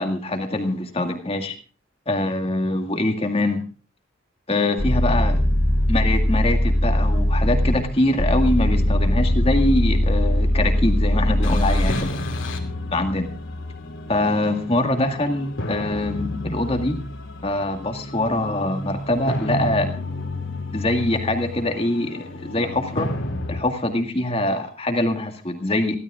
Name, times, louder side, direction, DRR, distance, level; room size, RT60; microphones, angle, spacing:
voice 1, 0.0-1.6 2.1-3.6 4.5-5.4 5.9-12.2 12.9-13.3 14.1-17.0 17.4-19.9 20.7-23.1 23.5-26.0, left 1 dB, 30° left, 6 dB, 1.8 m, -23 dB
sound 1, 4.8-23.6, left 1 dB, 80° left, 2.5 m, -24 dB
27.5 x 12.5 x 2.4 m, 0.37 s
head